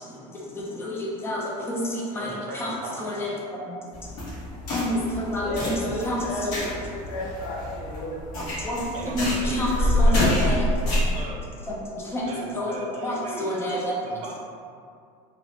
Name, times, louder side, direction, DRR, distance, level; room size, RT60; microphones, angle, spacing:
voice 1, 0.1-4.1 4.7-6.6 8.3-8.9 9.1-10.8 11.7-12.3 12.5-12.8 13.0-14.2, left 1 dB, 15° left, -4 dB, 0.5 m, -29 dB
voice 2, 2.2-3.0 8.9-10.2 11.1-11.4 12.2-13.5 14.0-14.4, right 2 dB, 40° right, 0 dB, 0.4 m, -38 dB
sound 1, 3.9-11.2, left 1 dB, 65° left, 1.1 m, -26 dB
voice 3, 5.3-8.4, left 1 dB, 85° left, -3 dB, 0.7 m, -33 dB
3.0 x 2.0 x 2.7 m, 2.3 s
supercardioid pair, 135°, 17 cm